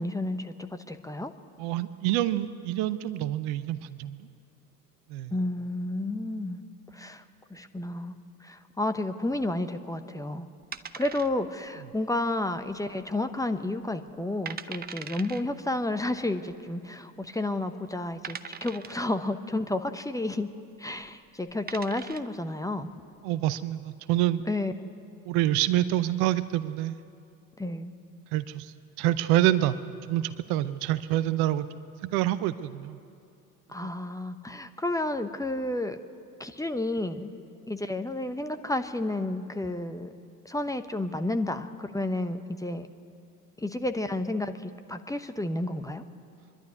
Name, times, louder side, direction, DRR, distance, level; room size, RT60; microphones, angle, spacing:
voice 1, 0.0-1.3 5.3-6.6 6.9-7.2 7.5-10.5 10.9-20.5 20.8-22.9 24.5-24.9 27.6-27.9 33.7-36.0 36.4-37.3 37.7-40.1 40.4-42.9 43.6-46.0, left 2 dB, 5° left, 8 dB, 0.9 m, -31 dB
voice 2, 1.6-4.3 5.1-5.3 23.2-24.4 25.3-27.0 28.3-29.8 30.1-33.0, right 14 dB, 55° right, 14 dB, 0.8 m, -27 dB
sound 1, 10.7-11.7 11.9-12.0 12.6-13.1 13.4-13.5 14.1-14.2 14.5-15.4 16.5-16.6 17.3-17.4 18.2-19.1 20.9-21.1 21.5-22.4, right 7 dB, 20° right, 0.7 m, -40 dB
24.0 x 11.5 x 9.5 m, 2.5 s
figure-of-eight pair, 65°, 45 cm